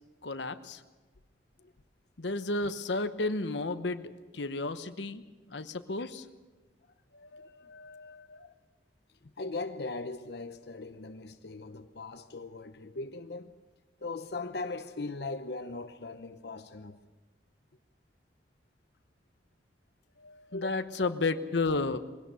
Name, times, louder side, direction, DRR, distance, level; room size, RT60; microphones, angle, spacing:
voice 1, 0.2-0.8 2.2-5.2 5.5-6.2 20.6-22.0, left 3 dB, 90° left, 1.1 m, -32 dB
voice 2, 7.1-8.6 9.2-13.5 14.0-17.0 20.2-21.0, left 3 dB, 65° left, 0.8 m, -40 dB
22.5 x 17.5 x 6.9 m
head